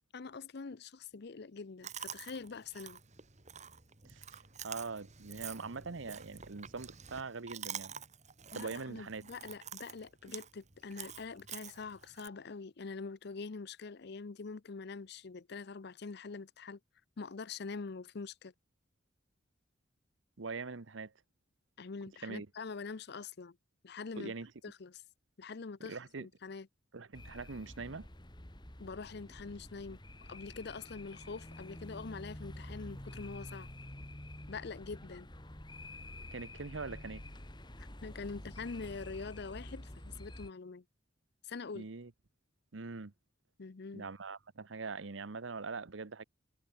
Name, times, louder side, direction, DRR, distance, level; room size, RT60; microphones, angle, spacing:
voice 1, 0.1-3.0 8.5-16.8 17.2-18.5 21.8-23.6 23.8-24.3 24.6-25.0 25.4-26.7 28.8-33.7 34.5-35.3 37.8-40.8 41.4-41.9 43.6-44.1, left 4 dB, 60° left, 0.6 m, -44 dB
Chewing mastication, 1.8-12.3, right 8 dB, 35° right, 2.2 m, -48 dB
voice 2, 4.0-4.4 4.6-7.9 8.5-9.2 20.4-21.1 22.2-22.5 24.2-24.5 25.8-26.3 26.9-28.1 36.3-37.2 41.7-42.1 42.7-43.1 43.9-46.2, right 4 dB, 80° right, 1.0 m, -42 dB
sound 1, 27.1-40.5, left 1 dB, 25° left, 2.6 m, -49 dB
head